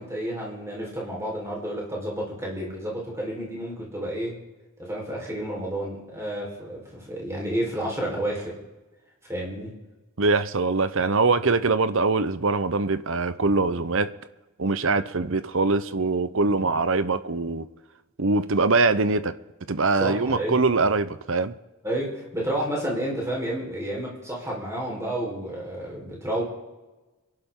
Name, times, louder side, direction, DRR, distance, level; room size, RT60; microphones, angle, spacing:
voice 1, 0.0-4.4 4.8-8.6 9.3-9.7 20.0-20.6 21.8-26.4, right 1 dB, 15° right, 4.5 m, -30 dB
voice 2, 10.2-14.1 14.6-17.7 18.2-19.3 19.7-21.5, right 3 dB, 60° right, 0.8 m, -23 dB
26.5 x 11.5 x 3.8 m
head